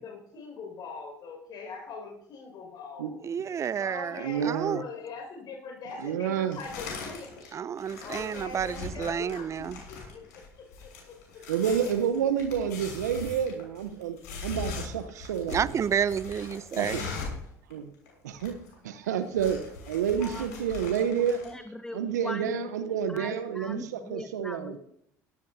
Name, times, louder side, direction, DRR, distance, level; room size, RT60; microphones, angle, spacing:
voice 1, 0.0-3.2 3.8-7.6 8.0-11.1 16.8-17.3, left 4 dB, 50° left, 2 dB, 5.7 m, -42 dB
voice 2, 3.2-4.8 7.5-9.8 15.5-17.1, right 8 dB, 35° right, 20 dB, 0.5 m, -30 dB
voice 3, 4.2-4.8 6.0-6.6 11.5-14.2 14.4-15.8 16.8-17.0 17.7-17.9 18.2-18.6 18.8-19.6 19.9-21.4 21.9-24.8, right 8 dB, 80° right, 11 dB, 0.9 m, -29 dB
sound 1, 6.5-7.5 7.8-17.5 17.7-17.8 18.1-18.7 19.0-21.5, left 4 dB, 75° left, 6.4 m, -40 dB
voice 4, 20.2-20.6 21.0-22.7 23.1-24.8, left 1 dB, 5° left, 9 dB, 0.9 m, -41 dB
17.5 x 14.0 x 2.8 m, 0.72 s
hypercardioid pair, 65°, 9 cm